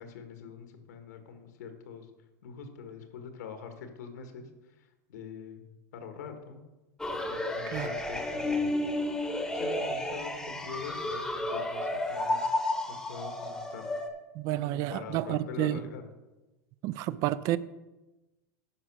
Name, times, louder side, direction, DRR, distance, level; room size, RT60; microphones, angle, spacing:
voice 1, 0.0-2.1 2.4-5.6 5.9-6.6 7.3-8.8 9.5-12.8 13.1-13.9 14.6-16.0, left 6 dB, 90° left, 6 dB, 1.6 m, -44 dB
sound 1, 7.0-14.1, left 1 dB, 5° left, 0.9 m, -32 dB
voice 2, 14.3-15.8 16.8-17.6, right 14 dB, 40° right, 17 dB, 0.4 m, -30 dB
10.0 x 5.1 x 6.3 m, 1.1 s
supercardioid pair, 155°, 9 cm